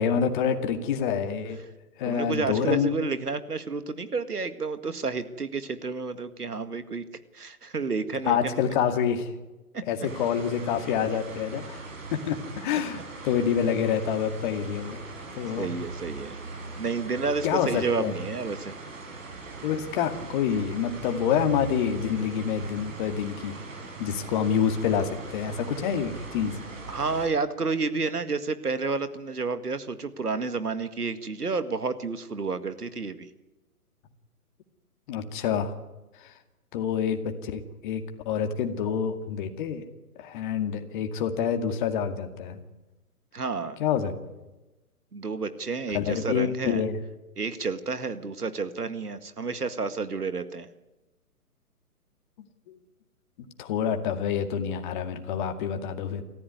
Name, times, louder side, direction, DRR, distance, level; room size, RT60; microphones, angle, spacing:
voice 1, 0.0-1.6 2.0-2.9 8.3-9.3 9.9-15.0 15.4-15.7 17.4-18.1 19.6-23.6 24.0-26.5 35.1-35.7 36.2-36.3 36.7-39.8 40.2-42.6 43.8-44.1 45.9-47.0 52.7-52.8 53.6-56.2, left 8 dB, 30° left, 6 dB, 2.2 m, -27 dB
voice 2, 2.1-7.0 7.3-8.7 9.7-9.8 15.6-16.4 16.8-18.8 26.9-33.3 43.3-43.8 45.1-46.8 47.4-50.7, right 4 dB, 90° right, 11 dB, 2.0 m, -30 dB
sound 1, 10.0-27.3, right 3 dB, 60° right, 6.6 m, -40 dB
27.5 x 14.5 x 9.6 m, 1.1 s
figure-of-eight pair, 135°, 45 cm